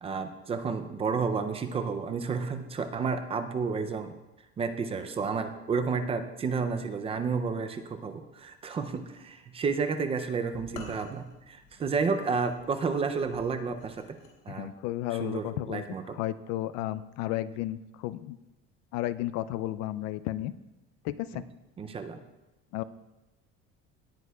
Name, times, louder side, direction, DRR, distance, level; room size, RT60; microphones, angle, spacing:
voice 1, 0.0-4.2 4.6-14.0 14.5-14.7 15.1-16.2 21.3-21.4 21.8-22.2, right 5 dB, 20° right, 8 dB, 0.4 m, -31 dB
sound 1, 10.5-14.3, left 4 dB, 85° left, 3.1 m, -49 dB
voice 2, 14.5-15.8 16.1-18.4 18.9-20.5 21.0-21.4 22.7-22.8, left 14 dB, 65° left, 16 dB, 0.5 m, -33 dB
18.0 x 9.2 x 2.3 m, 1.0 s
cardioid pair, 175°, 30 cm